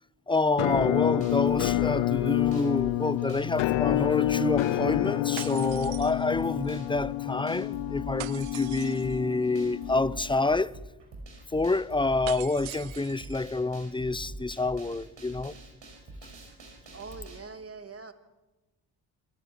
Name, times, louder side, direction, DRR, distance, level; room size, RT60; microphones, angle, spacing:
voice 1, 0.3-10.8 11.5-15.5, left 3 dB, 10° left, 0.6 m, -28 dB
Musical instrument, 0.6-10.4, left 15 dB, 90° left, 0.7 m, -28 dB
sound 1, 0.7-17.4, right 2 dB, 65° right, 5.8 m, -44 dB
sound 2, 5.4-6.7 8.2-9.2 12.3-13.4, right 18 dB, 90° right, 0.6 m, -42 dB
voice 2, 16.9-18.1, right 4 dB, 30° right, 2.6 m, -43 dB
26.5 x 10.5 x 9.5 m
cardioid pair, 60°, 46 cm